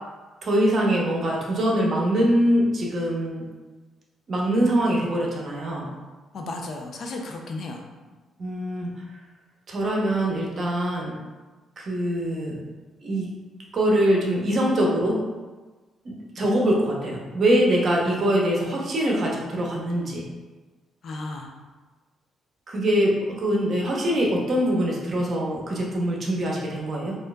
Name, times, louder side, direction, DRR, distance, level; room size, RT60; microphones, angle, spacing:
voice 1, 0.4-3.4 4.3-5.9 8.4-8.9 9.7-11.1 11.8-12.6 13.0-13.3 13.7-15.2 16.0-20.2 22.7-27.2, right 1 dB, 50° right, -2 dB, 0.8 m, -23 dB
voice 2, 6.3-7.8 16.4-16.5 21.0-21.5, left 2 dB, 60° left, 2 dB, 0.5 m, -34 dB
4.4 x 2.4 x 2.3 m, 1.3 s
cardioid pair, 90°, 0 cm